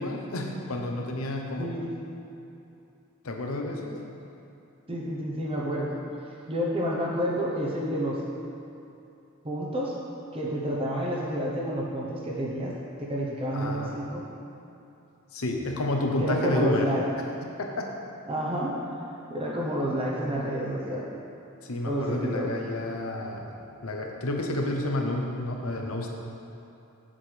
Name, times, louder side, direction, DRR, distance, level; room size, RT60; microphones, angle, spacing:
voice 1, 0.0-1.7 3.2-4.0 13.5-14.0 15.3-16.9 17.8-17.9 21.6-23.5 23.8-26.1, left 1 dB, 75° left, 2 dB, 0.9 m, -30 dB
voice 2, 4.9-6.0 6.5-8.2 9.4-10.0 10.3-12.7 13.0-14.2 16.2-17.0 18.3-18.8 19.3-21.0 21.8-22.6, equal, 25° right, -3 dB, 0.9 m, -29 dB
7.8 x 7.4 x 3.4 m, 2.7 s
head